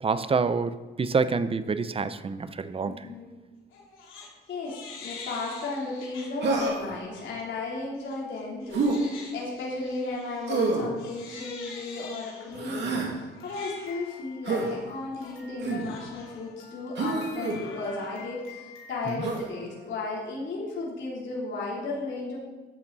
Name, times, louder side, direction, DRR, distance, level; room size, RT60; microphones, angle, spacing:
voice 1, 0.0-3.1 19.1-19.2, right 4 dB, 30° right, 13 dB, 0.7 m, -27 dB
voice 2, 2.9-3.3 4.5-22.4, left 3 dB, 65° left, -5 dB, 3.6 m, -35 dB
Crying sobbing, 3.7-4.3 4.6-6.7 7.1-7.4 7.9-19.9, left 5 dB, 90° left, 3.0 m, -46 dB
Human voice, 6.4-7.0 8.7-9.0 10.5-10.9 12.5-13.1 14.4-14.7 15.6-15.9 16.9-17.6 19.2-19.4, right 3 dB, 60° right, 2.5 m, -27 dB
13.5 x 8.9 x 4.1 m, 1.2 s
cardioid pair, 90°, 20 cm